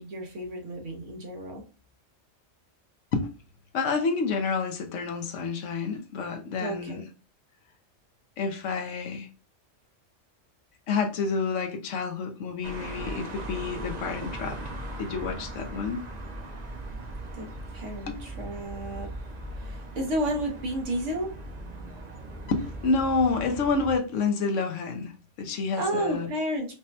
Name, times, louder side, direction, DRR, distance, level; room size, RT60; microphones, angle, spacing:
voice 1, 0.0-1.6 6.6-7.0 17.3-17.5 17.7-19.1 19.6-21.3 25.7-26.7, right 1 dB, 80° right, 1.3 m, -31 dB
voice 2, 3.7-7.1 8.4-9.3 10.9-14.6 15.0-16.0 18.1-18.2 22.5-26.3, left 4 dB, 80° left, 1.0 m, -29 dB
sound 1, 12.6-24.0, right 1 dB, 45° right, 0.6 m, -39 dB
4.9 x 2.1 x 2.6 m
omnidirectional pair, 1.3 m